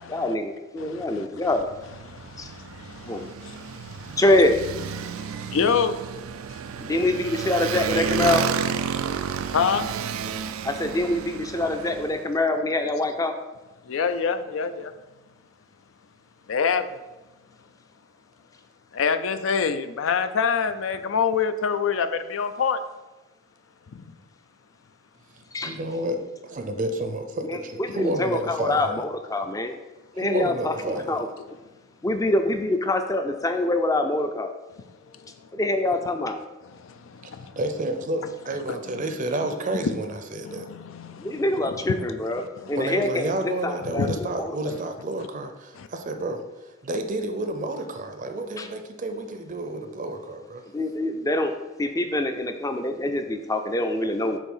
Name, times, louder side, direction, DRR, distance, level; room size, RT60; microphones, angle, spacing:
voice 1, 0.1-1.7 2.4-2.5 3.1-3.3 4.2-4.6 6.8-8.5 10.6-13.3 25.5-25.7 27.4-27.6 27.9-29.0 29.3-29.8 30.2-30.7 31.1-31.3 32.0-34.5 35.5-36.4 41.2-42.4 42.7-44.1 44.4-44.5 48.6-48.7 50.7-51.5 51.8-54.4, left 1 dB, 15° left, 6 dB, 0.4 m, -24 dB
voice 2, 0.8-1.3 2.1-4.2 5.0-5.9 8.9-9.1 9.5-9.9 12.9-13.0 13.9-14.9 16.5-16.9 18.9-22.8 23.9-24.0 36.7-37.6 40.4-41.4 41.9-42.0 42.6-42.8 44.0-44.1 45.8-45.9, left 6 dB, 70° left, 10 dB, 0.4 m, -27 dB
Motorcycle, 1.5-12.2, right 7 dB, 90° right, 0.4 m, -31 dB
voice 3, 25.3-29.1 30.1-31.3 37.2-40.7 42.7-50.6, right 1 dB, 40° right, 6 dB, 0.5 m, -30 dB
7.1 x 2.7 x 5.5 m, 1.1 s
head